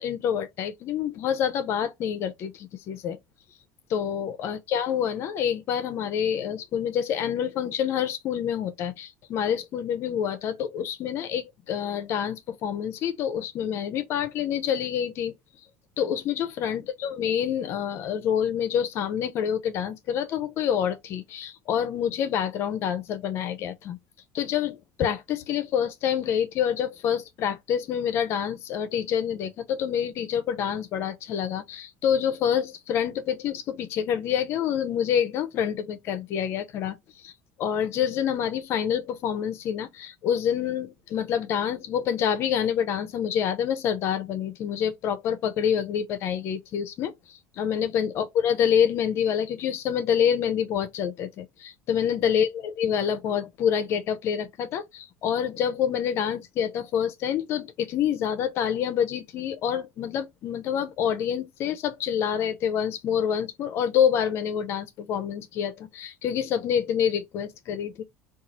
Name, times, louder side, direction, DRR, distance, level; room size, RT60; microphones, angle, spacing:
voice 1, 0.0-3.2 3.9-15.3 16.0-24.0 24.3-37.0 37.2-37.3 37.6-47.1 47.6-68.0, left 8 dB, 50° left, 0.5 m, -27 dB
2.9 x 2.4 x 3.9 m
cardioid pair, 135°, 6 cm